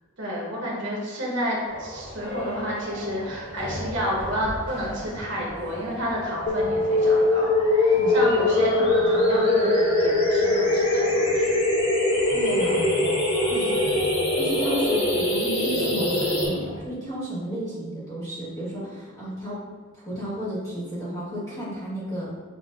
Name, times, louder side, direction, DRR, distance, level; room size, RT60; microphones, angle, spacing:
voice 1, 0.2-11.6 13.5-13.9, equal, 60° right, -5 dB, 1.2 m, -30 dB
sound 1, 1.7-16.8, equal, 35° left, 1.4 m, -35 dB
sound 2, 6.5-16.5, left 2 dB, 70° left, 1.4 m, -22 dB
voice 2, 12.3-12.9 13.5-13.9 14.4-19.6 20.0-22.5, equal, 15° left, -9 dB, 1.5 m, -32 dB
7.7 x 2.6 x 2.5 m, 1.4 s
head